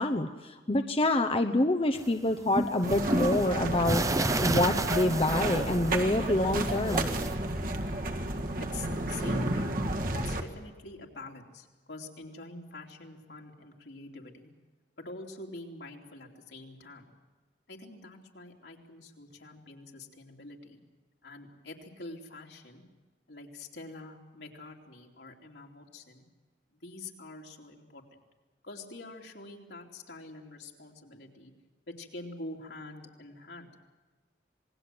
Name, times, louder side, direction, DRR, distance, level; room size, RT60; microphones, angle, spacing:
voice 1, 0.0-4.0 4.4-7.1, left 2 dB, 30° left, 7 dB, 0.9 m, -27 dB
sound 1, 1.9-6.3 6.5-7.3, right 2 dB, 20° right, 0.8 m, -31 dB
sound 2, 2.8-10.4, right 1 dB, 50° right, 1.9 m, -31 dB
voice 2, 8.6-9.8 10.1-14.5 15.0-17.0 17.7-20.8 21.2-22.8 23.3-26.2 26.7-28.2 28.6-31.5 31.9-33.7, left 2 dB, 75° left, 1 dB, 3.2 m, -46 dB
27.0 x 19.5 x 7.8 m, 1.3 s
head